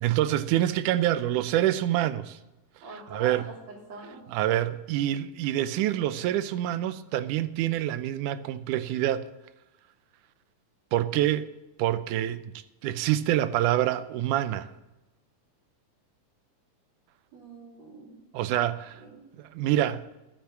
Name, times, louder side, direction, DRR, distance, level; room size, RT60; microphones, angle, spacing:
voice 1, 0.0-2.4 3.1-3.4 4.3-9.3 10.9-11.5 11.8-14.7 18.3-18.8 19.4-20.2, right 13 dB, 85° right, 2.1 m, -26 dB
voice 2, 2.8-4.3 17.3-18.2 18.5-18.6 19.0-19.2, right 2 dB, 60° right, 4.1 m, -44 dB
12.0 x 9.6 x 7.1 m
omnidirectional pair, 3.5 m